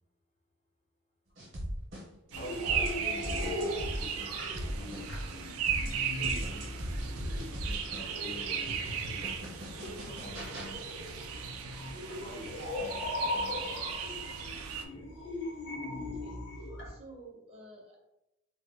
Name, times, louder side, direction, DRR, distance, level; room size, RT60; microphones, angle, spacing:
sound 1, 1.4-2.3 2.7-5.3 5.7-10.7, equal, 60° right, 0.8 m, -39 dB
sound 2, 2.3-16.9, left 2 dB, 55° left, 0.8 m, -40 dB
voice 1, 2.3-5.5 6.2-9.3 9.8-10.8 12.0-14.1 14.9-15.1, left 1 dB, 30° left, 0 dB, 0.4 m, -48 dB
sound 3, 2.3-14.8, right 7 dB, 80° right, 0.3 m, -37 dB
voice 2, 15.9-18.0, right 2 dB, 30° right, -1 dB, 0.6 m, -53 dB
2.2 x 2.0 x 3.3 m, 0.90 s
head